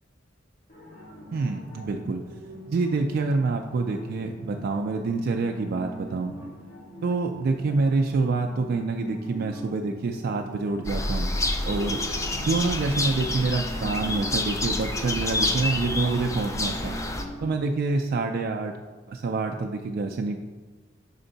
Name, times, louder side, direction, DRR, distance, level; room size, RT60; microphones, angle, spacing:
sound 1, 0.7-17.5, equal, 55° left, 1.4 m, -42 dB
voice 1, 1.3-2.2 2.7-6.3 7.0-11.3 11.7-12.0 12.4-17.0 17.4-18.7 19.1-20.4, right 3 dB, 55° right, 3 dB, 0.3 m, -27 dB
sound 2, 10.8-17.2, left 2 dB, 15° left, 0.4 m, -28 dB
5.6 x 4.4 x 3.9 m, 1.3 s
head